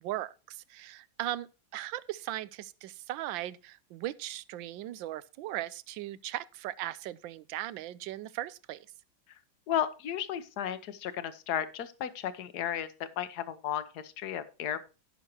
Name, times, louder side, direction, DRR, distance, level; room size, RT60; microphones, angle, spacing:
voice 1, 0.0-8.9, right 14 dB, 75° right, 1.3 m, -38 dB
voice 2, 9.7-12.9 13.2-14.9, left 10 dB, 60° left, 1.3 m, -34 dB
15.5 x 6.3 x 2.8 m
omnidirectional pair, 2.1 m